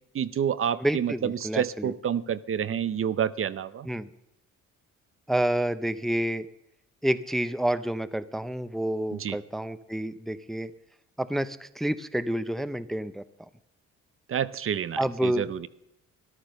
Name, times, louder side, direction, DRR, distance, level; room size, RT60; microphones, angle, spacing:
voice 1, 0.1-3.9 9.1-9.4 14.3-15.7, right 8 dB, 45° right, 15 dB, 0.7 m, -29 dB
voice 2, 0.8-1.9 3.9-4.1 5.3-6.5 7.0-10.7 11.2-13.2 15.0-15.5, right 1 dB, ahead, 13 dB, 0.6 m, -29 dB
13.5 x 11.5 x 6.5 m, 0.81 s
cardioid pair, 90°, 30 cm